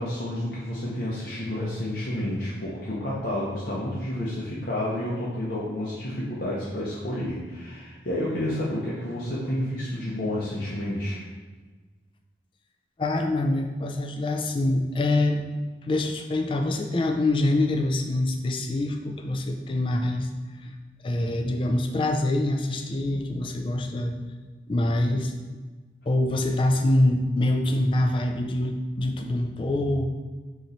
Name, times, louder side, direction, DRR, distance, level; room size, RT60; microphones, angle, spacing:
voice 1, 0.0-11.2, left 1 dB, 55° left, -7 dB, 0.7 m, -30 dB
voice 2, 13.0-15.5 15.9-20.3 20.6-20.7 21.0-24.1 24.7-25.3 26.1-30.0, left 1 dB, 30° left, 4 dB, 0.3 m, -25 dB
3.9 x 3.0 x 4.1 m, 1.3 s
head